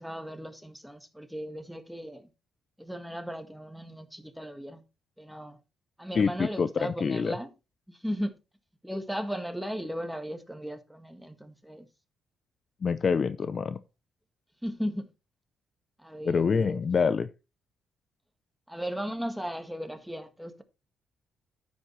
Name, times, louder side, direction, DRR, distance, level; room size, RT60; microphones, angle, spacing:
voice 1, 0.0-2.3 2.8-4.8 5.2-5.6 6.0-7.5 7.9-8.3 8.8-11.9 14.6-15.1 16.0-16.8 18.7-20.6, equal, ahead, 1.6 m, -36 dB
voice 2, 6.1-7.3 12.8-13.8 16.2-17.3, left 5 dB, 45° left, 0.6 m, -26 dB
10.0 x 8.4 x 3.2 m
cardioid pair, 90°, 0 cm